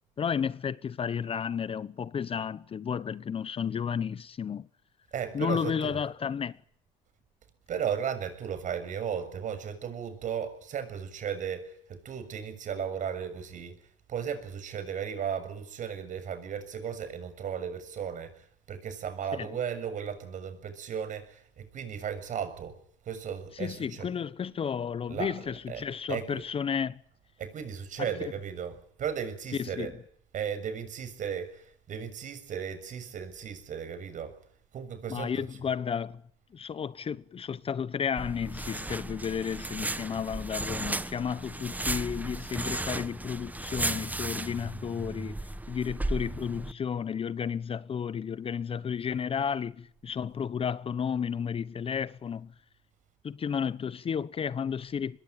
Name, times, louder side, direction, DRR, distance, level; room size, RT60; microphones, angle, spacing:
voice 1, 0.2-4.7 5.3-6.6 19.4-19.5 23.5-27.0 28.0-28.1 29.5-29.9 35.1-36.2 36.5-45.4 45.7-52.5 53.2-55.2, left 7 dB, 35° left, 1.0 m, -32 dB
voice 2, 5.1-6.0 7.7-13.8 14.1-22.8 23.0-24.1 25.1-25.3 25.7-26.4 27.4-29.9 30.3-34.3 34.7-35.4, right 8 dB, 50° right, 7.0 m, -35 dB
sound 1, 38.2-46.7, right 2 dB, 10° right, 1.4 m, -35 dB
24.5 x 21.5 x 9.0 m
supercardioid pair, 90°, 17 cm